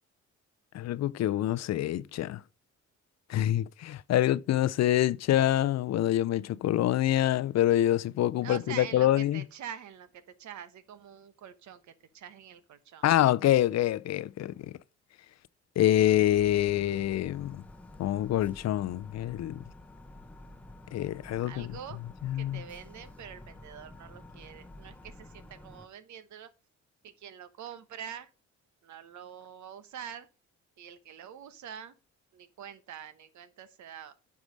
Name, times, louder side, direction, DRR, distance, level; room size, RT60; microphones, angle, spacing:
voice 1, 0.7-2.4 3.3-9.4 13.0-14.7 15.8-17.6 18.0-19.6 20.9-21.7 22.2-22.6, left 13 dB, 60° left, 0.5 m, -26 dB
voice 2, 8.4-13.1 21.5-22.0 22.3-26.5 27.0-28.3 28.8-30.3 30.8-32.0 32.3-34.1, right 9 dB, 70° right, 1.1 m, -45 dB
sound 1, 16.0-25.9, left 1 dB, 5° left, 0.9 m, -50 dB
9.2 x 4.9 x 5.1 m
cardioid pair, 90°, 30 cm